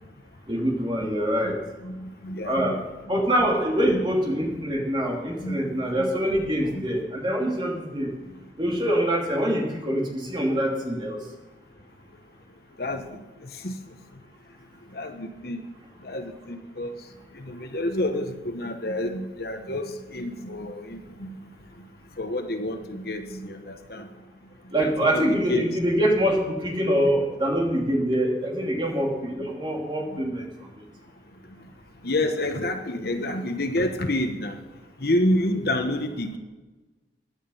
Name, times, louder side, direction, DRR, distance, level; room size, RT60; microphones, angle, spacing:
voice 1, 0.5-1.6 2.4-2.8 3.1-8.1 8.6-11.2 24.7-30.4, equal, 25° right, 0 dB, 2.8 m, -24 dB
voice 2, 1.8-2.8 3.1-3.2 3.9-4.0 5.4-6.1 6.7-7.0 7.7-7.8 12.8-13.7 14.9-15.6 16.0-16.9 17.3-21.4 22.2-24.1 24.8-25.7 30.1-30.2 32.0-34.6 35.0-36.4, left 1 dB, 55° left, 6 dB, 1.2 m, -29 dB
16.5 x 11.0 x 5.6 m, 1.2 s
head